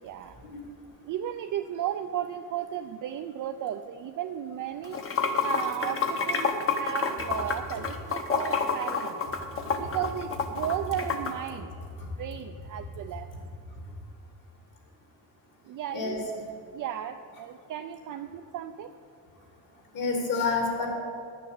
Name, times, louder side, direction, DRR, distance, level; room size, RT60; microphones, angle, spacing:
voice 1, 0.0-0.4 1.0-5.0 5.4-9.2 9.8-11.7 12.2-13.3 15.6-16.3 16.7-18.9, right 10 dB, 60° right, 7 dB, 0.5 m, -35 dB
Water / Sink (filling or washing), 4.8-11.3, left 5 dB, 35° left, 1.0 m, -28 dB
voice 2, 15.9-16.2 19.9-20.9, left 4 dB, 60° left, 0 dB, 2.8 m, -28 dB
10.0 x 6.6 x 8.1 m, 2.6 s
cardioid pair, 145°, 36 cm